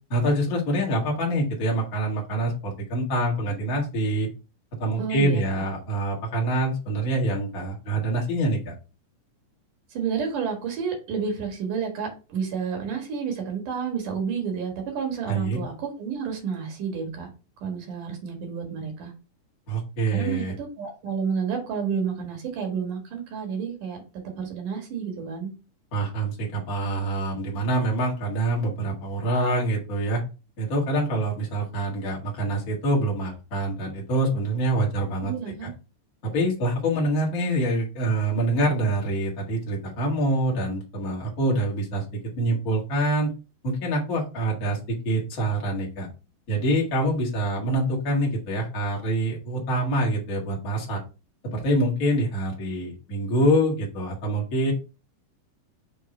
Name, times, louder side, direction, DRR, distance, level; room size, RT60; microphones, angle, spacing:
voice 1, 0.1-4.3 4.8-8.7 15.3-15.6 19.7-20.5 25.9-30.2 30.6-35.3 36.3-42.0 42.4-43.3 43.6-46.1 46.5-51.0 51.4-54.7, right 1 dB, 35° left, -2 dB, 1.8 m, -25 dB
voice 2, 5.0-5.7 9.9-17.3 17.6-19.1 20.1-24.0 24.4-25.5 35.2-35.7, right 6 dB, 75° right, 3 dB, 3.2 m, -30 dB
6.4 x 3.4 x 4.3 m, 0.30 s
omnidirectional pair, 3.6 m